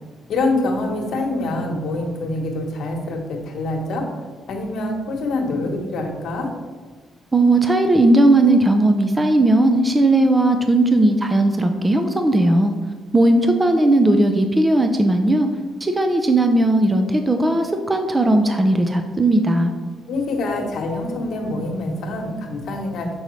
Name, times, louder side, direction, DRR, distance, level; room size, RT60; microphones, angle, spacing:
voice 1, 0.3-4.1 4.5-6.5 20.1-23.1, left 2 dB, 70° left, 2 dB, 1.2 m, -25 dB
voice 2, 7.3-12.7 13.1-15.5 15.8-19.7, right 1 dB, 20° right, 5 dB, 0.5 m, -17 dB
6.5 x 5.3 x 3.2 m, 1.4 s
cardioid pair, 90°, 0 cm